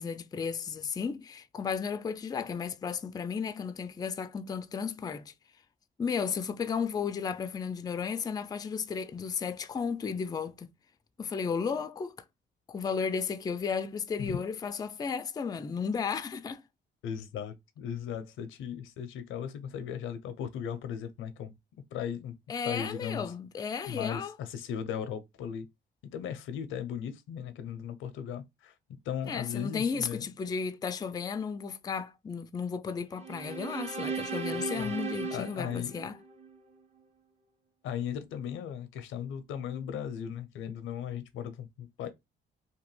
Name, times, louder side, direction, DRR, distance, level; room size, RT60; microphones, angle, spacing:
voice 1, 0.0-5.3 6.0-10.7 11.2-12.1 12.7-16.6 22.5-24.3 29.3-36.2, left 6 dB, 20° left, 0.3 m, -34 dB
voice 2, 17.0-21.5 21.9-22.4 22.6-23.3 23.9-25.7 26.1-28.7 29.0-30.3 34.5-34.9 35.3-35.9 37.8-42.1, left 8 dB, 85° left, 0.6 m, -37 dB
sound 1, 33.2-36.6, right 4 dB, 35° right, 0.7 m, -36 dB
2.9 x 2.2 x 3.1 m
cardioid pair, 90°, 20 cm